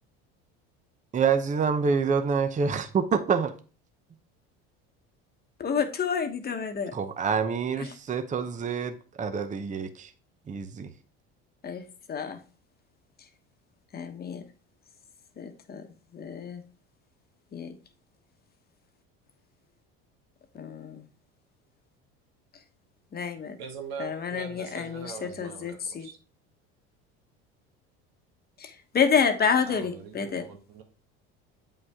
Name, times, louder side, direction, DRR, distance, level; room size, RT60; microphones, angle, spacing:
voice 1, 1.1-3.5 6.9-10.1 10.5-10.9, right 6 dB, 25° right, 9 dB, 0.8 m, -27 dB
voice 2, 5.6-6.9 7.8-7.9 11.6-12.4 13.9-14.4 15.4-16.6 17.5-17.7 20.5-21.1 23.1-23.6 24.0-26.1 28.6-30.5, left 6 dB, 30° left, 6 dB, 1.2 m, -29 dB
voice 3, 23.6-26.2 29.7-30.8, right 6 dB, 85° right, 4 dB, 1.8 m, -42 dB
8.2 x 5.5 x 3.6 m, 0.38 s
supercardioid pair, 105°, 30 cm